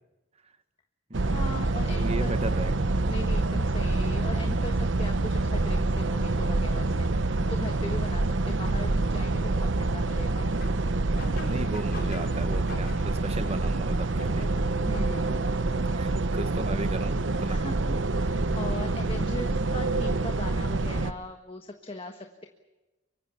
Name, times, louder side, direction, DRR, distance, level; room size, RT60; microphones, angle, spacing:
sound 1, 1.1-21.1, right 2 dB, 70° right, 0.9 m, -26 dB
voice 1, 1.2-2.3 3.1-10.5 14.8-15.5 17.4-22.5, left 2 dB, 30° left, 5 dB, 1.5 m, -39 dB
voice 2, 2.0-2.9 11.2-14.5 15.6-17.6, right 1 dB, 30° right, 9 dB, 1.7 m, -36 dB
sound 2, 10.4-16.3, left 2 dB, 50° left, 4.3 m, -45 dB
24.5 x 24.0 x 7.1 m, 1.1 s
head